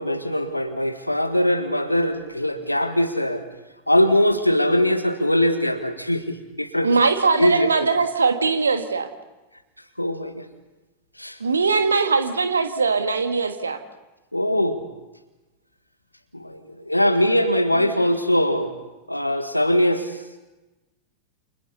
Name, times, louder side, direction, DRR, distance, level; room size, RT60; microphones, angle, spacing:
voice 1, 0.0-3.4 3.9-6.9 7.4-7.9 10.0-10.5 11.2-11.4 14.3-14.8 16.3-18.7 19.1-20.2, left 1 dB, 85° left, 9 dB, 1.7 m, -21 dB
voice 2, 6.8-9.1 11.4-13.8 17.8-18.1, right 4 dB, 75° right, 8 dB, 1.8 m, -21 dB
29.5 x 28.0 x 4.1 m, 1.1 s
figure-of-eight pair, 90°, 0 cm